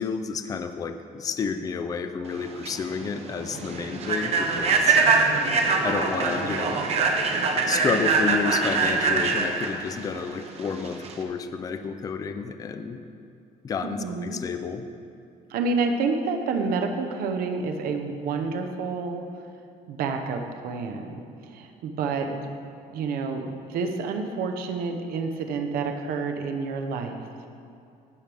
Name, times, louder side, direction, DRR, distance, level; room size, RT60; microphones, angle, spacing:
voice 1, 0.0-5.0 5.8-6.8 7.7-13.0 13.6-14.8, left 5 dB, 25° left, 9 dB, 0.4 m, -30 dB
Human voice / Train, 2.3-11.2, right 4 dB, 45° right, 0.9 m, -24 dB
voice 2, 5.0-5.6 13.8-14.4 15.5-19.2 19.9-22.5 22.9-27.2, right 4 dB, 75° right, 5 dB, 0.9 m, -29 dB
15.5 x 6.2 x 3.5 m, 2.5 s
cardioid pair, 160°, 15 cm